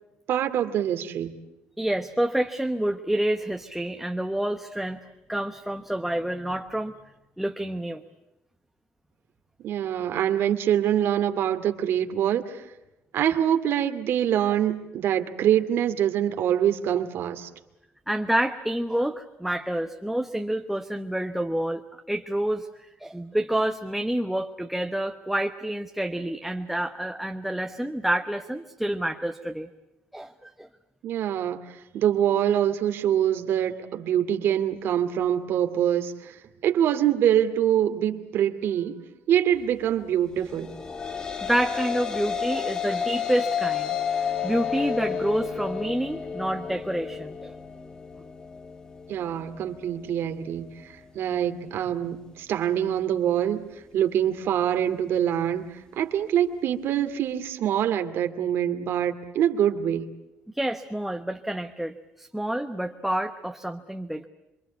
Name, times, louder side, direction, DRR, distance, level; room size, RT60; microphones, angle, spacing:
voice 1, 0.3-1.4 9.6-12.6 13.1-17.5 31.0-40.8 49.1-53.6 53.9-60.1, right 10 dB, 65° right, 7 dB, 2.4 m, -25 dB
voice 2, 1.8-5.0 5.3-6.9 7.4-8.0 18.1-21.8 22.1-22.7 23.0-29.7 30.1-30.3 30.6-30.7 41.5-47.5 60.5-64.3, right 1 dB, 5° right, 4 dB, 1.1 m, -28 dB
sound 1, 40.6-49.1, left 7 dB, 20° left, 1.7 m, -31 dB
27.5 x 24.5 x 8.3 m, 0.94 s
cardioid pair, 150°, 4 cm